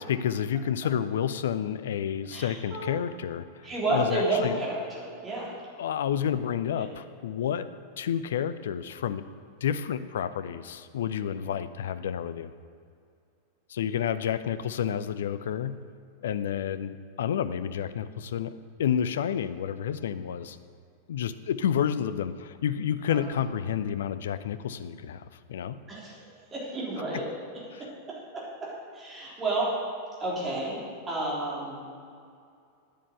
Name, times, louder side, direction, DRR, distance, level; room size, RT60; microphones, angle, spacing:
voice 1, 0.0-4.6 5.8-7.7 8.0-9.2 9.6-12.5 13.7-15.8 16.2-18.5 18.8-20.6 21.1-25.8 27.7-27.8, left 9 dB, 60° left, 13 dB, 0.5 m, -30 dB
voice 2, 2.3-3.0 3.6-5.5 6.8-6.9 11.2-11.5 23.1-23.2 25.9-27.3 27.8-29.8 30.2-30.8 31.1-31.9, right 2 dB, 20° right, -6 dB, 3.6 m, -31 dB
10.0 x 9.9 x 6.8 m, 2.4 s
figure-of-eight pair, 90°, 0 cm